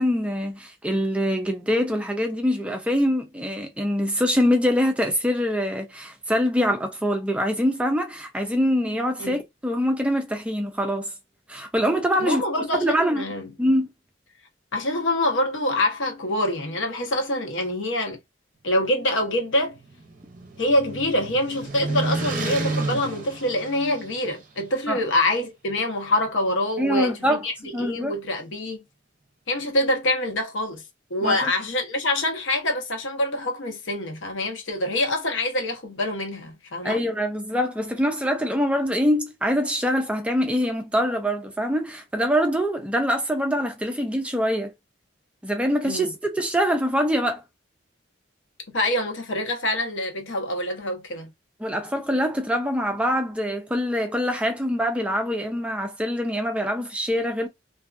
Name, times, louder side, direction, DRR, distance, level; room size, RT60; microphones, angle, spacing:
voice 1, 0.0-11.1 11.5-12.4 12.8-13.3 13.6-13.9 24.9-25.0 26.8-27.4 27.7-28.2 31.2-31.5 36.8-44.7 45.4-47.4 51.6-57.5, equal, 5° right, 0.4 m, -24 dB
voice 2, 12.2-13.5 14.7-18.2 18.6-19.8 20.6-28.8 29.5-30.8 31.1-37.1 45.8-46.1 48.7-51.3, left 1 dB, 75° left, 0.9 m, -25 dB
sound 1, 19.6-24.4, right 2 dB, 45° right, 0.6 m, -31 dB
2.6 x 2.3 x 2.4 m
head